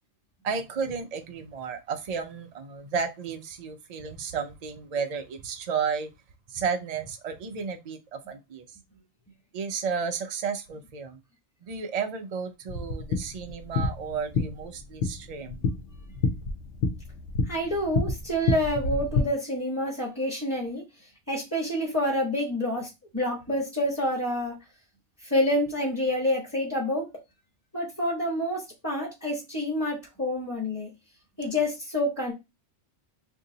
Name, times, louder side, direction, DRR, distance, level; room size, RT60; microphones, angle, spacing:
voice 1, 0.4-6.1 6.5-8.8 9.5-11.2 11.6-15.6, right 6 dB, 80° right, 0.3 m, -33 dB
sound 1, 12.7-19.2, left 4 dB, 80° left, 1.0 m, -29 dB
voice 2, 17.5-20.8 21.3-24.5 25.2-27.1 27.7-30.9 31.4-32.3, left 1 dB, 15° left, 0.8 m, -28 dB
2.7 x 2.6 x 3.7 m
omnidirectional pair, 1.3 m